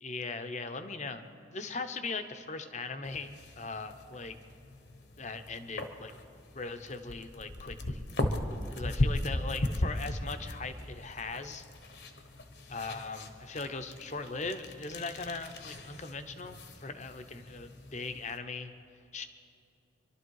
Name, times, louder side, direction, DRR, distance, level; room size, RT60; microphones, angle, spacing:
voice 1, 0.0-4.4 5.2-6.1 6.5-8.0 8.7-11.7 12.7-18.7 19.1-19.3, left 3 dB, 35° left, 9 dB, 0.8 m, -39 dB
sound 1, 3.0-18.4, left 1 dB, 60° left, 1.2 m, -38 dB
25.0 x 12.0 x 4.8 m, 2.6 s
head